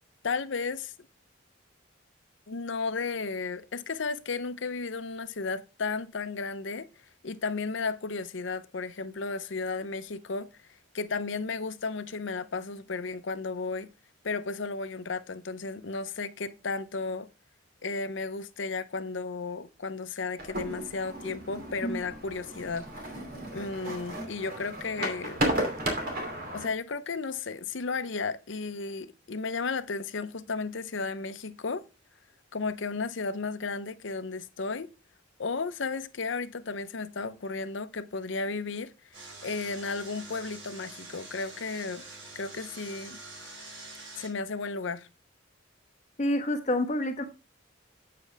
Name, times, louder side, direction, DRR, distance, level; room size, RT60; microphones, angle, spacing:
voice 1, 0.2-0.9 2.5-6.9 7.2-10.5 10.9-13.9 14.2-17.3 17.8-22.9 23.5-25.4 26.5-31.8 32.5-34.9 35.4-38.9 39.4-42.0 42.3-43.2 44.2-45.1, left 4 dB, 70° left, 0.7 m, -34 dB
sound 1, 20.4-26.7, right 1 dB, 45° right, 2.7 m, -34 dB
Engine, 39.1-44.3, right 2 dB, 70° right, 5.6 m, -46 dB
voice 2, 46.2-47.2, left 1 dB, 35° left, 1.2 m, -28 dB
8.4 x 7.8 x 3.4 m
head